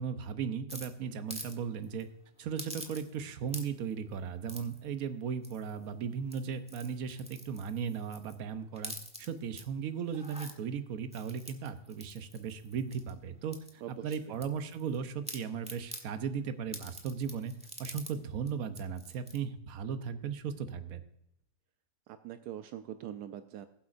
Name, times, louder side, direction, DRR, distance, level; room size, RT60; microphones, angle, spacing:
voice 1, 0.0-2.1 2.4-17.5 17.8-21.0, right 7 dB, 65° right, 10 dB, 1.2 m, -37 dB
sound 1, 0.7-1.6 1.8-2.0 2.6-3.2 3.5-3.9 4.5-4.8 5.4-5.8 6.2-8.4 8.7-9.6 10.1-10.5 11.1-13.1 13.5-15.0 15.3-16.1 16.7-18.1 18.5-18.6 18.8-19.4, equal, 5° right, 1.1 m, -46 dB
voice 2, 13.8-14.4 22.1-23.7, right 11 dB, 80° right, 9 dB, 1.1 m, -43 dB
20.0 x 8.0 x 2.6 m, 0.80 s
omnidirectional pair, 1.7 m